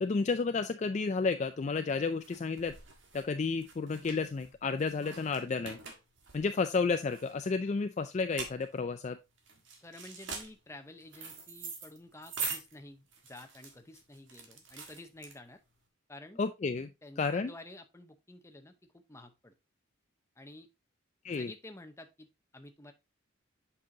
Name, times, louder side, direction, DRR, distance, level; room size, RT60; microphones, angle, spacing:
voice 1, 0.0-2.8 3.1-5.8 6.3-9.2 16.4-16.9 17.2-17.5 21.2-21.5, left 4 dB, 35° left, 9 dB, 0.3 m, -31 dB
sound 1, 1.4-15.8, right 5 dB, 65° right, 1.6 m, -44 dB
voice 2, 9.8-15.6 16.1-16.4 17.0-19.5 20.4-20.7 21.3-22.9, left 2 dB, 15° left, 6 dB, 0.7 m, -51 dB
7.6 x 5.6 x 2.7 m, 0.23 s
head